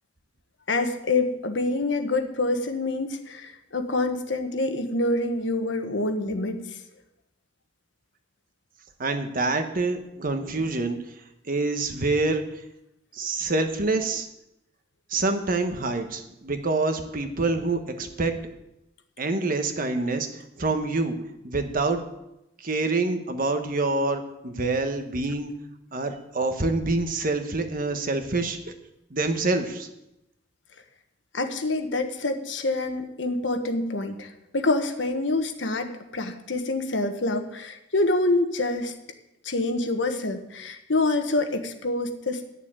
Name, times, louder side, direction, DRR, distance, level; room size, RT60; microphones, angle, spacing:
voice 1, 0.7-6.6 31.3-38.9 39.4-42.4, left 2 dB, 80° left, 7 dB, 1.4 m, -26 dB
voice 2, 9.0-11.0 11.5-12.4 13.1-14.3 15.1-18.3 19.2-21.2 21.4-22.0 22.6-25.5 25.9-28.6 29.1-29.9, right 3 dB, 50° right, 7 dB, 1.3 m, -26 dB
11.0 x 7.1 x 8.8 m, 0.87 s
head